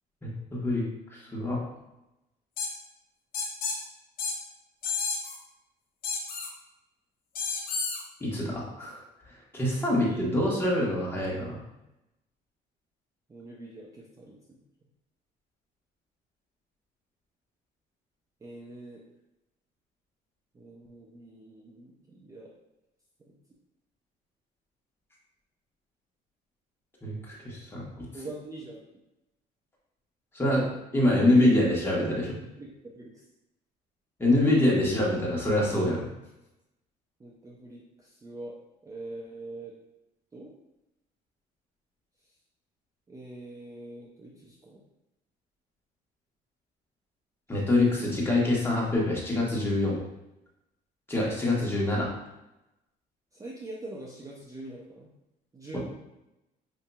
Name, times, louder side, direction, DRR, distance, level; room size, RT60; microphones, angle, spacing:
voice 1, 0.2-1.6 8.2-9.0 9.5-11.6 27.0-28.1 30.3-32.4 34.2-36.1 47.5-50.0 51.1-52.1 55.7-55.8, left 1 dB, 15° left, -4 dB, 1.1 m, -25 dB
sound 1, 2.6-2.7 3.3-3.8 4.2-4.3 4.8-5.4 6.0-6.5 7.4-8.0, left 4 dB, 60° left, 0.9 m, -31 dB
voice 2, 13.3-14.6 18.4-19.0 20.5-22.5 28.1-28.8 31.3-31.5 32.6-33.1 37.2-38.6 38.8-39.7 40.3-40.5 43.1-44.8 47.5-47.8 53.3-55.1 55.5-55.8, right 2 dB, 20° right, -3 dB, 0.5 m, -43 dB
5.2 x 2.7 x 2.2 m, 0.92 s
cardioid pair, 110°, 17 cm